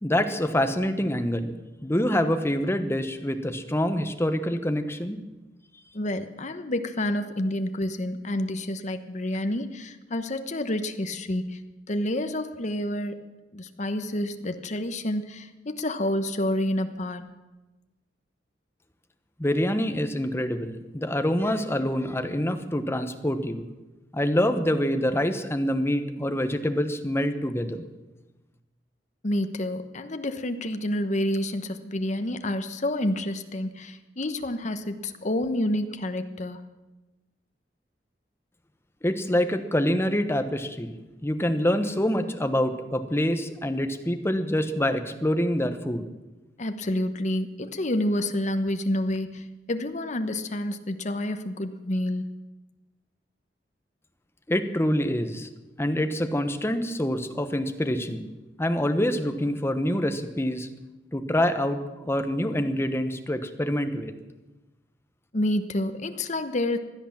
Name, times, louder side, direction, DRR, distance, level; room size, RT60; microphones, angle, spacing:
voice 1, 0.0-5.2 19.4-23.7 24.1-27.8 39.0-41.0 41.2-46.0 54.5-55.5 55.8-58.3 58.6-60.7 61.1-64.1, left 1 dB, 15° left, 8 dB, 1.1 m, -26 dB
voice 2, 5.9-11.6 11.9-13.2 13.5-17.3 29.2-36.6 46.6-52.2 65.3-66.8, left 1 dB, 45° left, 9 dB, 1.1 m, -29 dB
16.5 x 11.0 x 7.4 m, 1.1 s
head